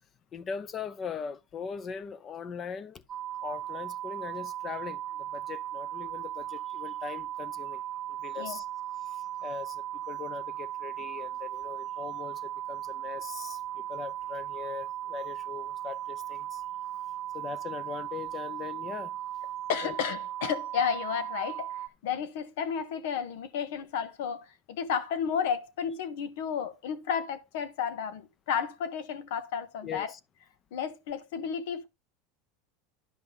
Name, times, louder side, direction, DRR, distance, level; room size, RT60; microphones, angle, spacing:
voice 1, 0.3-3.0 3.4-7.8 8.1-8.7 9.0-16.6 17.3-19.1 19.8-19.9 29.8-30.2, left 6 dB, 30° left, 0.7 m, -40 dB
sound 1, 3.1-21.9, right 12 dB, 30° right, 0.6 m, -37 dB
voice 2, 19.7-30.1 30.7-31.9, left 7 dB, 80° left, 1.3 m, -32 dB
11.0 x 5.4 x 3.8 m
supercardioid pair, 135°, 0 cm